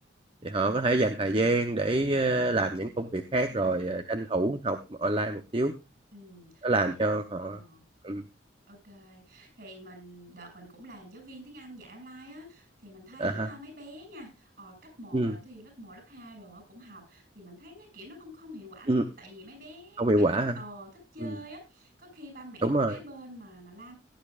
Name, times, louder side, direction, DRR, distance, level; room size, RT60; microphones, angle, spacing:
voice 1, 0.4-5.7 6.6-7.6 8.0-8.2 13.2-13.5 15.1-15.3 18.9-19.0 20.0-20.6 21.2-21.3 22.6-23.0, right 2 dB, 30° right, 7 dB, 0.8 m, -26 dB
voice 2, 3.5-3.9 6.1-7.1 7.4-7.8 8.7-24.0, equal, 50° right, 4 dB, 7.6 m, -48 dB
17.0 x 10.5 x 2.5 m, 0.26 s
head